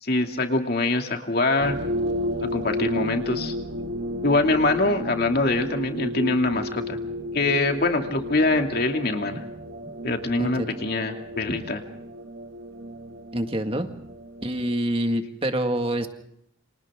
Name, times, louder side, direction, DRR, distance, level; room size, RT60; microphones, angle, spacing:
voice 1, 0.0-1.8 2.4-3.5 4.2-7.0 7.3-9.4 10.0-11.8, left 2 dB, 50° left, 4 dB, 2.6 m, -24 dB
sound 1, 1.6-14.8, equal, 60° right, 1.8 m, -33 dB
voice 2, 10.4-10.7 13.3-13.9 14.4-16.1, right 1 dB, 30° right, 6 dB, 1.9 m, -26 dB
30.0 x 27.0 x 3.7 m, 0.72 s
head